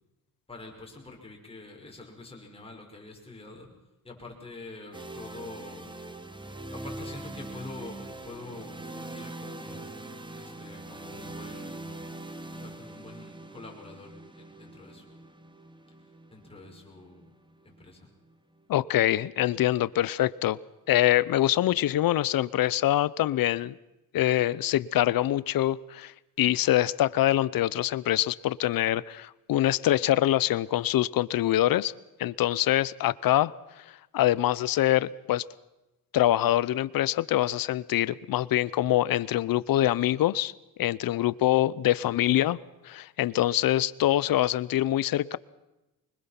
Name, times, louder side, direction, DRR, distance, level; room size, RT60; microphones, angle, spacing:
voice 1, 0.5-3.7 4.0-5.9 6.7-10.0 10.4-12.2 12.5-15.2 16.3-17.2 17.6-18.1 42.0-42.5, left 3 dB, 15° left, 0 dB, 5.7 m, -46 dB
sound 1, 4.9-18.8, right 2 dB, 10° right, 1.6 m, -42 dB
voice 2, 18.7-20.6 20.9-23.7 24.1-26.1 26.4-31.9 32.2-33.5 34.1-35.4 36.1-40.5 40.8-42.6 42.8-45.4, left 13 dB, 65° left, 19 dB, 0.8 m, -24 dB
24.5 x 21.5 x 5.9 m, 0.99 s
cardioid pair, 130°, 38 cm